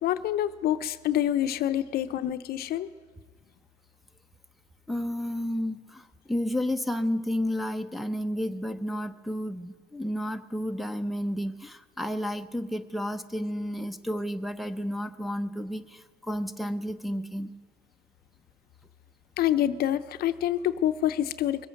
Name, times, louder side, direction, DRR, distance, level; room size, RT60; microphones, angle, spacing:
voice 1, 0.0-2.9 19.4-21.7, left 11 dB, 65° left, 12 dB, 0.6 m, -27 dB
voice 2, 4.9-17.5, equal, ahead, 5 dB, 0.7 m, -31 dB
21.5 x 8.4 x 6.4 m, 1.5 s
cardioid pair, 110°, 17 cm